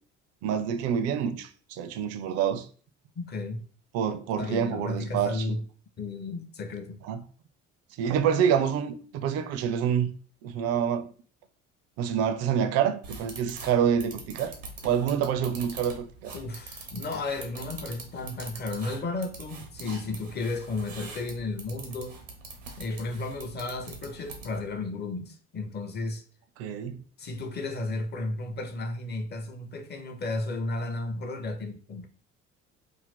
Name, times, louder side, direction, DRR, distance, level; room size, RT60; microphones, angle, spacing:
voice 1, 0.4-2.7 3.9-5.6 7.1-7.2 8.0-10.1 10.4-11.1 12.0-14.6 14.8-16.3 26.6-27.0, right 8 dB, 45° right, 0.4 m, -27 dB
voice 2, 3.2-3.6 4.4-5.6 6.0-7.0 16.3-22.2 22.8-26.2 27.2-32.1, left 2 dB, 25° left, 0.6 m, -33 dB
sound 1, 13.0-24.7, right 3 dB, 85° right, 0.7 m, -44 dB
2.6 x 2.3 x 3.5 m
figure-of-eight pair, 55°, 37 cm